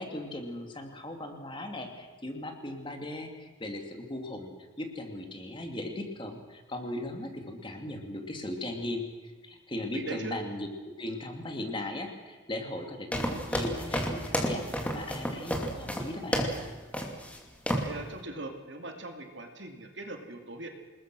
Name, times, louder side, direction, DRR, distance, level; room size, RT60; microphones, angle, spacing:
voice 1, 0.0-4.5 4.8-9.0 9.4-10.7 11.0-16.5, left 1 dB, 25° left, 4 dB, 2.5 m, -38 dB
voice 2, 9.9-10.4 17.7-20.7, right 2 dB, 60° right, 4 dB, 2.6 m, -40 dB
sound 1, 13.1-16.6 16.9-17.4 17.7-17.9, equal, 5° left, 2.6 m, -31 dB
28.0 x 20.5 x 6.3 m, 1.3 s
head